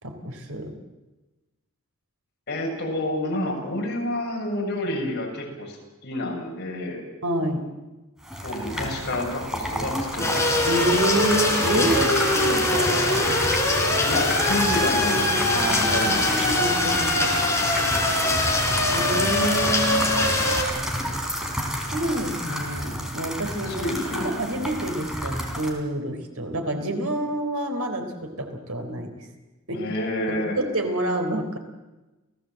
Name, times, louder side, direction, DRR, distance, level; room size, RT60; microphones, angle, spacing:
voice 1, 0.0-0.7 7.2-7.6 10.7-13.3 15.5-16.1 16.5-17.8 18.9-20.4 21.9-29.3 29.7-29.8 30.6-31.6, right 1 dB, 85° right, 5 dB, 3.7 m, -28 dB
voice 2, 2.5-5.8 6.0-7.0 8.4-10.4 14.1-17.4 23.7-24.4 29.7-30.6, left 1 dB, 50° left, -1 dB, 7.0 m, -29 dB
sound 1, 8.2-25.7, equal, 5° right, 3.9 m, -30 dB
sound 2, 10.2-20.6, left 2 dB, 15° left, 4.2 m, -22 dB
28.0 x 17.0 x 7.7 m, 1.1 s
head